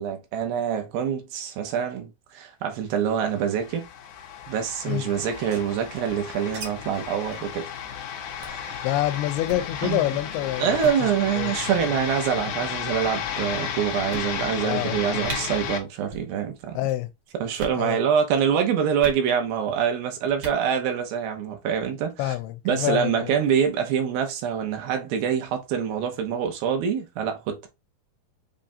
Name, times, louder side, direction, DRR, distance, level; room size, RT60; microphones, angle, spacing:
voice 1, 0.0-3.9 4.5-7.7 8.3-8.9 9.8-10.1 10.6-16.8 17.4-22.4 22.7-27.7, right 8 dB, 75° right, 2.6 m, -25 dB
sound 1, 3.2-15.8, left 8 dB, 65° left, 2.1 m, -33 dB
sound 2, 5.2-6.7 6.9-7.0 7.3-7.5 7.8-8.0 8.4-8.7 9.4-9.7 10.3-10.5 10.7-11.0 11.9-12.3 13.0-13.1 13.6-13.7 14.1-14.6 14.9-15.0 15.2-15.4 16.0-16.3 16.6-17.0 17.5-17.8 19.0-19.2 20.3-20.6, right 2 dB, 55° right, 1.9 m, -39 dB
voice 2, 8.8-10.8 11.4-11.7 14.6-15.0 16.8-17.1 17.7-18.0 22.2-23.3, left 14 dB, 85° left, 2.6 m, -27 dB
7.3 x 2.5 x 2.7 m
omnidirectional pair, 4.5 m